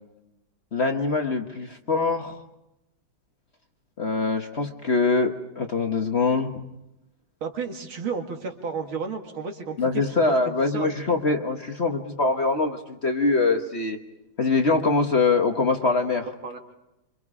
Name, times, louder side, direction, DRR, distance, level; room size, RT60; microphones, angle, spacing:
voice 1, 0.7-2.4 4.0-6.6 9.8-14.0 14.4-16.3, left 3 dB, 40° left, 4 dB, 1.2 m, -23 dB
voice 2, 7.4-10.9 16.4-16.6, right 5 dB, 85° right, 3 dB, 2.9 m, -32 dB
26.0 x 25.5 x 4.9 m, 0.91 s
omnidirectional pair, 2.2 m